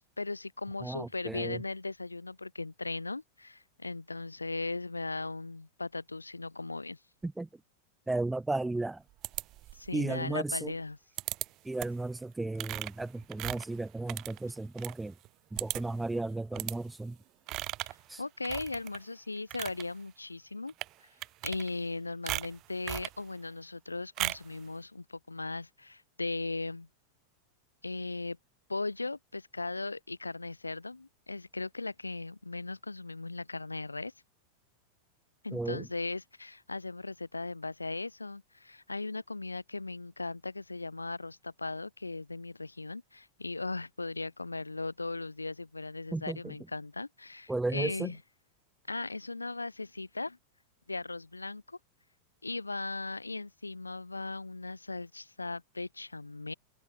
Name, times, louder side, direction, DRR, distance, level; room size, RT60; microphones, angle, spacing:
voice 1, 0.2-7.0 9.7-11.0 17.8-17.9 18.2-20.7 21.4-26.9 27.8-28.4 28.7-34.1 35.4-48.2 48.9-50.4 50.9-51.8 52.4-56.5, left 3 dB, 80° left, 4.2 m, -38 dB
voice 2, 0.8-1.6 7.2-7.5 8.1-9.0 9.9-10.7 11.6-15.1 15.5-17.2 18.1-18.2 35.5-35.9 46.1-46.5 47.5-48.1, right 2 dB, 5° right, 2.9 m, -34 dB
sound 1, 9.2-9.9 11.2-11.5 11.8-12.1 12.5-14.9 15.2-15.3 15.6-16.0 16.5-16.8 17.5-18.0 18.4-19.0 19.4-19.8 20.7-20.9 21.2-21.9 22.3-23.2 24.2-24.5, right 18 dB, 35° right, 6.3 m, -37 dB
figure-of-eight pair, 90°, 0 cm